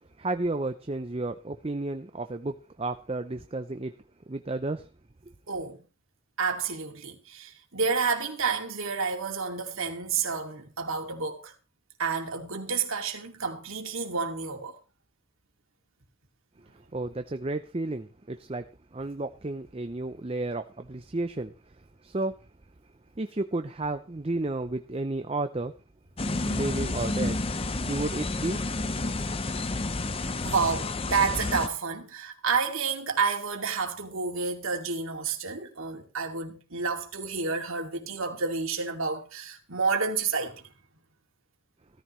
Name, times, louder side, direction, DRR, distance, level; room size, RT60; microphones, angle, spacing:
voice 1, 0.2-4.0 4.3-4.9 5.2-5.3 16.7-22.5 23.2-25.7 26.2-27.4 27.9-28.6, right 2 dB, 25° right, 0.6 m, -32 dB
voice 2, 5.5-5.8 6.4-11.5 12.0-14.8 29.4-29.5 30.1-40.6, right 5 dB, 75° right, 2.5 m, -30 dB
sound 1, 26.2-31.7, left 2 dB, 25° left, 0.7 m, -30 dB
16.5 x 14.0 x 3.2 m
head